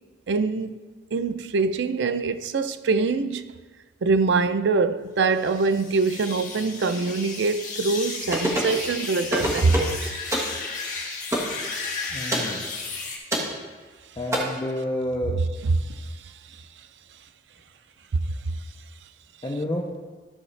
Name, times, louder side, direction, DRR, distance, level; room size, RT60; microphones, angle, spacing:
voice 1, 0.3-0.8 1.1-3.5 4.0-10.2 15.6-16.1, right 4 dB, 85° right, 0.5 m, -24 dB
sound 1, 5.3-13.2, left 4 dB, 45° left, 1.8 m, -34 dB
sound 2, 8.3-8.8 9.3-9.9 10.3-10.5 11.3-11.5 12.3-12.5 13.3-13.5 14.3-14.4, equal, 15° right, 1.3 m, -25 dB
voice 2, 12.1-12.7 14.2-15.4 19.4-19.9, left 1 dB, 25° left, 0.7 m, -29 dB
13.0 x 6.4 x 3.2 m
head